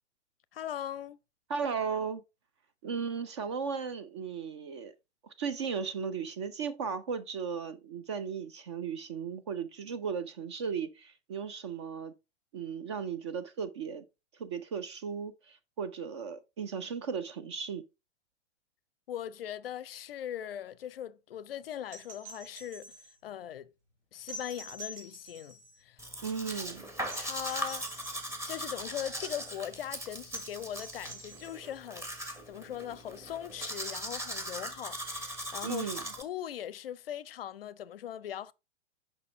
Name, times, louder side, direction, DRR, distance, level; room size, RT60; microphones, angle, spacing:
voice 1, 0.5-1.2 19.1-23.7 24.1-26.0 27.2-27.8 28.4-38.5, left 10 dB, 55° left, 0.5 m, -40 dB
voice 2, 1.5-2.2 2.8-4.9 5.2-12.1 12.5-14.1 14.4-17.8 26.2-26.8 35.6-36.0, right 6 dB, 25° right, 0.4 m, -36 dB
sound 1, 21.9-23.2 24.3-25.8 27.1-28.4 30.3-31.8 33.6-33.7, right 1 dB, 70° right, 3.4 m, -47 dB
Domestic sounds home sounds, 26.0-36.2, equal, 10° right, 1.1 m, -39 dB
6.6 x 5.4 x 3.6 m
figure-of-eight pair, 105°, 36 cm